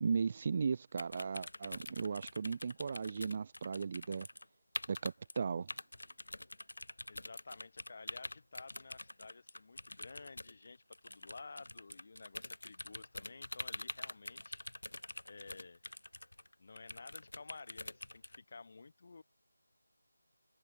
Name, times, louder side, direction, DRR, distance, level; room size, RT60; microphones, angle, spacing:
voice 1, 0.0-4.3 4.9-5.7, right 5 dB, 25° right, 0.4 m, -36 dB
sound 1, 1.0-4.5 4.7-5.4 5.7-18.4, left 2 dB, 90° left, 1.7 m, -46 dB
voice 2, 7.1-14.6 15.3-15.8 16.6-19.2, left 4 dB, 35° left, 4.3 m, -53 dB
figure-of-eight pair, 175°, 0 cm